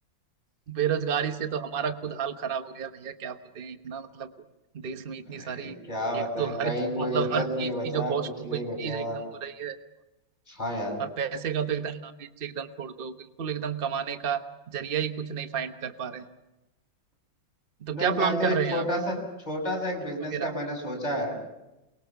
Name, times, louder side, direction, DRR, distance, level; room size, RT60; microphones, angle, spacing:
voice 1, 0.7-4.3 4.7-5.8 6.1-9.8 11.0-13.1 13.4-16.3 17.8-18.8 20.2-20.5, right 7 dB, 35° right, 9 dB, 1.1 m, -31 dB
voice 2, 5.2-8.1 8.4-9.2 10.5-11.0 17.9-19.2 19.4-21.4, equal, 20° left, 1 dB, 6.2 m, -30 dB
28.5 x 23.0 x 5.9 m, 0.98 s
omnidirectional pair, 2.1 m